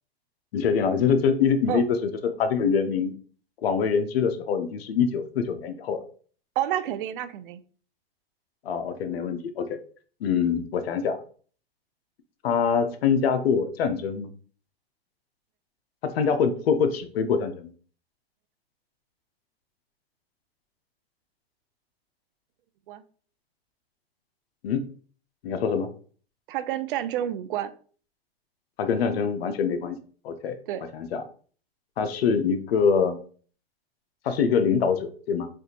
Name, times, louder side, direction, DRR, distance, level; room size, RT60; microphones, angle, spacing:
voice 1, 0.5-3.1 3.6-6.0 8.6-9.8 10.2-11.2 12.4-14.3 16.0-17.7 24.6-24.8 25.4-25.9 28.8-30.0 30.2-30.6 30.9-31.2 32.0-33.2 34.2-35.5, left 6 dB, 75° left, 8 dB, 0.6 m, -24 dB
voice 2, 6.6-7.6 22.9-23.0 26.5-27.7 30.7-30.8, right 11 dB, 60° right, 12 dB, 0.4 m, -29 dB
3.4 x 2.4 x 2.8 m, 0.43 s
hypercardioid pair, 130°, 31 cm